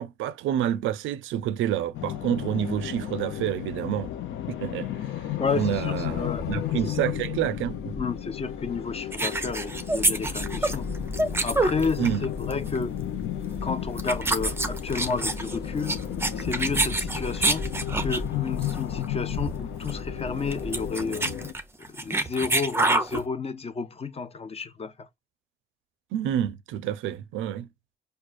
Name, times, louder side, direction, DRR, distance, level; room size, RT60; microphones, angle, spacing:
voice 1, 0.0-4.1 4.5-4.9 5.5-8.0 12.0-12.2 26.1-27.7, right 11 dB, 85° right, 0.4 m, -28 dB
sound 1, 1.9-21.5, left 12 dB, 80° left, 0.6 m, -34 dB
Ocean, 5.4-20.9, left 1 dB, 55° left, 1.2 m, -39 dB
voice 2, 5.4-6.4 6.8-7.0 8.0-10.9 11.4-13.0 13.6-16.0 16.3-17.7 18.0-21.3 21.8-25.1, left 4 dB, 30° left, 0.6 m, -31 dB
sound 2, 9.1-12.2 12.5-12.8 13.5-13.7 14.0-18.3 18.6-18.8 19.0-19.1 19.3-19.6 19.9-20.0 20.4-23.2, right 2 dB, 10° right, 0.5 m, -27 dB
4.7 x 2.3 x 2.4 m
cardioid pair, 90°, 20 cm